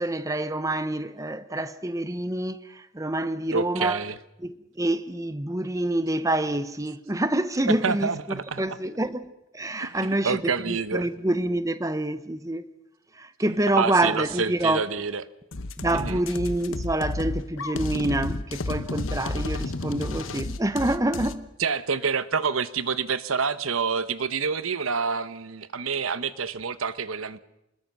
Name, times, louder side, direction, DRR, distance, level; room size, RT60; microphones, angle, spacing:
voice 1, 0.0-4.0 4.4-10.4 10.7-12.7 13.1-14.8 15.8-21.5, right 1 dB, 15° right, 0.8 m, -27 dB
voice 2, 3.5-4.2 7.7-8.8 9.8-11.1 13.5-15.3 15.9-16.2 21.6-27.4, right 5 dB, 85° right, 1.0 m, -28 dB
sound 1, 15.5-21.3, left 2 dB, 75° left, 1.1 m, -31 dB
27.0 x 20.5 x 6.1 m
head